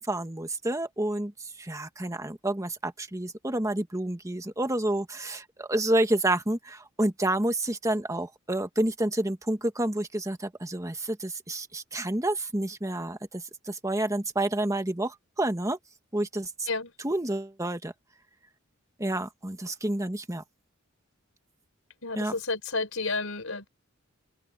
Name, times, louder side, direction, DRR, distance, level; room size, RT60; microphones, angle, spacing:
voice 1, 0.0-15.8 16.1-16.7 17.0-17.9 19.0-20.4 22.2-22.3, right 1 dB, 15° right, 1.5 m, -29 dB
voice 2, 22.0-23.7, left 3 dB, 85° left, 4.1 m, -31 dB
open air
head